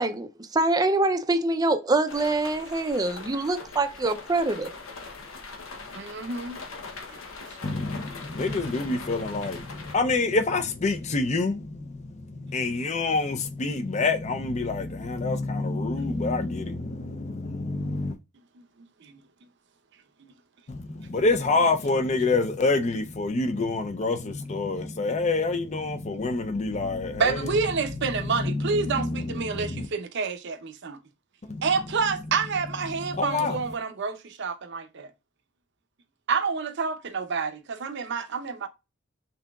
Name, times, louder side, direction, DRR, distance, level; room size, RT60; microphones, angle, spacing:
voice 1, 0.0-4.7, right 2 dB, 20° right, 0.4 m, -25 dB
sound 1, 2.1-9.9, left 4 dB, 85° left, 0.8 m, -41 dB
voice 2, 5.9-6.6 7.5-7.6 19.0-19.2 20.2-20.3 27.2-31.0 31.6-35.1 36.3-38.7, right 5 dB, 60° right, 0.6 m, -28 dB
voice 3, 7.6-18.1 20.7-29.9 31.4-32.0 32.9-33.6, left 3 dB, 35° left, 0.5 m, -27 dB
5.9 x 2.8 x 2.3 m
head